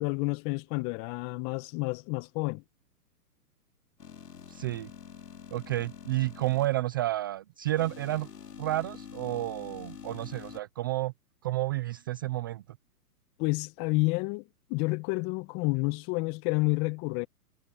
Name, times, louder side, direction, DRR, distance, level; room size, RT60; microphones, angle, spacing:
voice 1, 0.0-2.6 13.4-14.4 14.7-17.3, left 26 dB, 30° left, 1.1 m, -29 dB
sound 1, 4.0-6.7 7.7-10.6, left 7 dB, 85° left, 2.6 m, -46 dB
voice 2, 4.5-4.9 5.5-8.3 8.6-11.1 11.4-12.6, right 16 dB, 15° right, 0.4 m, -31 dB
hypercardioid pair, 130°, 47 cm